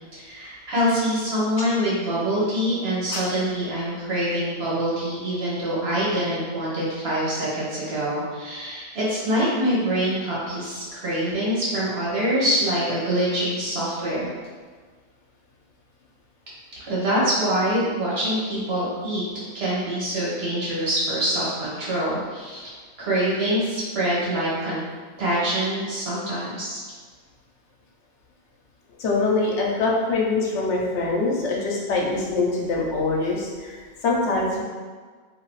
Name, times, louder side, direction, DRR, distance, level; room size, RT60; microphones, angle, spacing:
voice 1, 0.1-14.3 16.8-19.2 19.5-22.7 23.0-24.8 25.2-26.8, right 1 dB, 65° right, -8 dB, 1.2 m, -25 dB
voice 2, 29.0-34.6, left 3 dB, 80° left, -3 dB, 1.0 m, -24 dB
2.8 x 2.6 x 3.0 m, 1.5 s
omnidirectional pair, 1.2 m